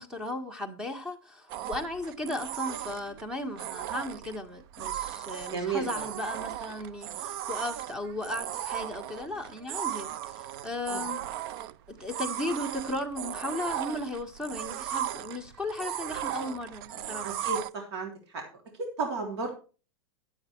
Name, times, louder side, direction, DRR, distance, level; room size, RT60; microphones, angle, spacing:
voice 1, 0.0-11.4 11.9-17.3, left 1 dB, 5° right, 1.5 m, -36 dB
sound 1, 1.5-17.7, right 12 dB, 60° right, 0.6 m, -37 dB
voice 2, 5.5-6.1 10.9-11.1 17.2-18.4 19.0-19.5, right 4 dB, 75° right, 3.4 m, -33 dB
11.0 x 8.3 x 4.5 m
supercardioid pair, 145°, 14 cm